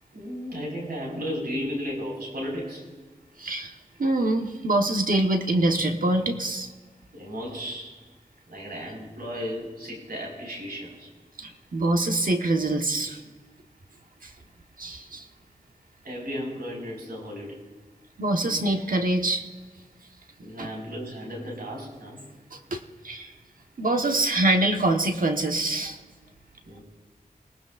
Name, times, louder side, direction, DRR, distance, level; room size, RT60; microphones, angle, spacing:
voice 1, 0.1-2.9 7.1-8.0 8.5-11.1 16.0-17.6 20.4-22.2 26.6-26.8, equal, 85° right, -2 dB, 5.2 m, -34 dB
voice 2, 3.4-3.7 4.0-6.7 11.4-13.2 14.2-14.3 14.8-15.2 18.2-19.5 20.6-20.7 22.5-22.8 23.0-23.3 23.8-26.0, right 2 dB, 65° right, 4 dB, 1.3 m, -24 dB
28.0 x 18.5 x 2.5 m, 1.4 s
wide cardioid pair, 105°, 16 cm